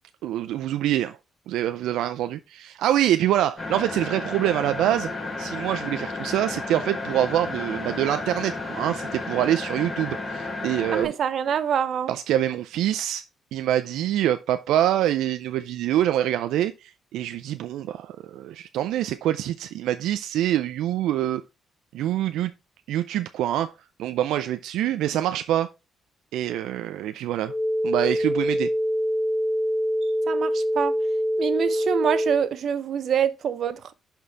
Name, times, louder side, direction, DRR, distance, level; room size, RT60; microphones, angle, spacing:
voice 1, 0.2-1.2 1.5-5.1 5.4-11.1 12.1-13.2 13.5-21.4 21.9-22.5 22.9-23.7 24.0-25.7 26.3-27.5 27.8-28.7 30.0-30.1, right 12 dB, 85° right, 0.4 m, -25 dB
sound 1, 3.6-11.0, left 3 dB, 30° left, 3.7 m, -32 dB
voice 2, 10.9-12.1 30.3-30.9 31.4-33.9, right 8 dB, 60° right, 0.8 m, -25 dB
sound 2, 27.5-32.5, equal, 50° left, 1.7 m, -24 dB
11.0 x 4.4 x 3.4 m
cardioid pair, 90°, 0 cm